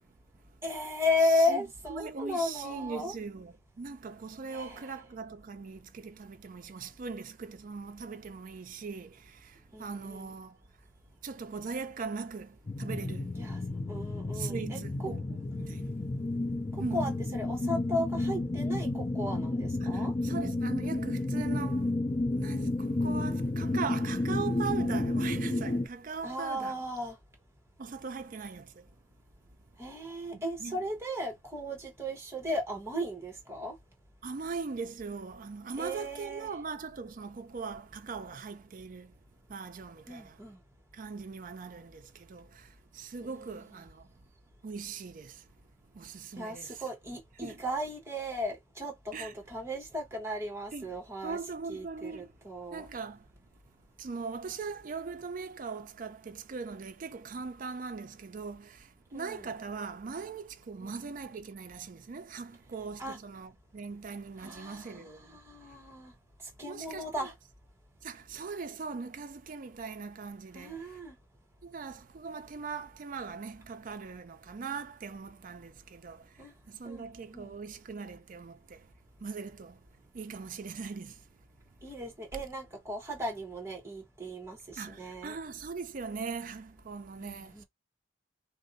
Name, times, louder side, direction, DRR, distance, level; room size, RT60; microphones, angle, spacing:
voice 1, 0.6-3.1 4.5-4.9 9.7-10.3 13.4-13.6 13.9-14.8 16.9-20.1 26.2-27.2 29.8-33.7 35.8-36.5 40.1-40.6 43.2-43.3 46.4-51.4 51.7-52.9 59.1-59.5 60.8-60.9 63.0-63.2 64.4-66.1 66.6-67.3 70.5-71.1 76.4-76.5 76.8-77.5 81.8-85.4 87.2-87.6, left 1 dB, 15° right, 1.0 m, -35 dB
voice 2, 1.2-10.6 11.2-13.3 14.3-15.9 16.8-17.1 19.8-21.9 22.4-26.7 27.8-28.8 30.3-30.8 34.2-39.1 39.5-40.4 40.9-44.1 44.6-45.5 45.9-46.8 47.4-47.6 49.1-49.3 50.7-50.9 51.2-52.3 52.7-53.3 54.0-65.4 66.7-67.3 68.0-71.0 71.6-78.9 79.2-79.8 80.1-81.2 84.8-87.6, right 5 dB, 45° right, 0.4 m, -40 dB
sound 1, 12.7-25.9, left 2 dB, 30° left, 0.5 m, -31 dB
2.6 x 2.1 x 3.9 m
head